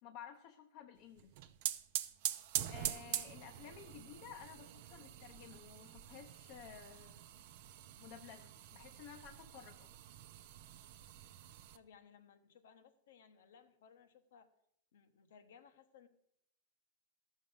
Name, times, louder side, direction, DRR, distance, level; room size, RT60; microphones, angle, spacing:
voice 1, 0.0-1.5 2.7-7.2 8.0-9.9, left 8 dB, 55° left, 5 dB, 0.8 m, -54 dB
sound 1, 1.2-11.8, right 13 dB, 60° right, 0.6 m, -44 dB
voice 2, 11.7-14.5 14.9-16.1, left 7 dB, 75° left, 10 dB, 1.1 m, -62 dB
13.5 x 6.4 x 5.4 m, 0.73 s
hypercardioid pair, 115°, 0 cm